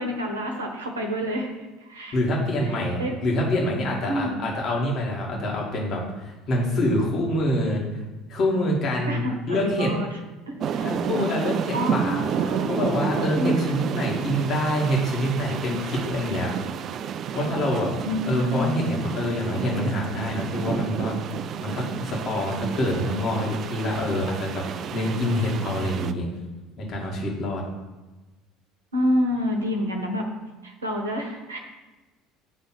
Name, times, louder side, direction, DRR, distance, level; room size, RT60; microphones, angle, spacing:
voice 1, 0.0-1.5 1.8-2.2 3.0-3.2 4.1-4.5 9.1-10.1 10.5-10.8 11.7-13.7 18.0-18.9 28.9-30.2 30.6-31.6, equal, 80° right, 2 dB, 0.9 m, -28 dB
voice 2, 2.1-7.8 8.3-9.9 10.8-16.5 17.3-17.9 18.3-21.2 21.6-26.3 26.8-27.6, left 1 dB, 45° left, -2 dB, 2.0 m, -26 dB
sound 1, 10.6-26.1, right 8 dB, 45° right, 0.3 m, -31 dB
6.8 x 3.4 x 6.0 m, 1.1 s
figure-of-eight pair, 65°, 0 cm